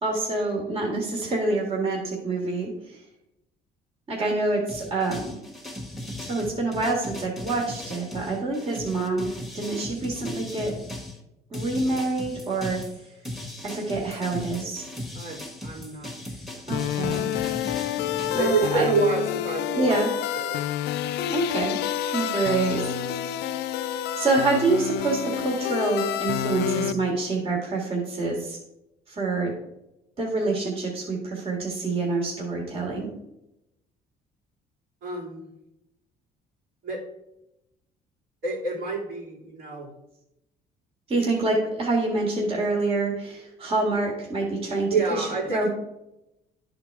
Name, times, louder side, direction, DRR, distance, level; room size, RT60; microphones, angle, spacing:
voice 1, 0.0-3.0 4.1-5.4 6.3-9.3 9.5-10.7 11.5-12.8 13.6-14.9 16.7-17.3 18.3-18.9 19.7-20.1 21.2-21.8 22.1-23.3 24.2-28.6 29.1-29.5 30.2-33.1 41.1-45.7, right 3 dB, 35° right, -2 dB, 1.9 m, -26 dB
sound 1, 4.7-11.2 11.5-18.4, left 1 dB, ahead, 1.3 m, -37 dB
voice 2, 15.1-16.6 18.4-20.0 20.3-20.6 35.0-35.5 36.8-37.0 38.4-39.9 44.9-45.7, right 4 dB, 70° right, -4 dB, 2.9 m, -28 dB
sound 2, 16.7-26.9, left 11 dB, 80° left, 0.4 m, -28 dB
10.5 x 3.9 x 4.7 m, 0.88 s
cardioid pair, 110°, 17 cm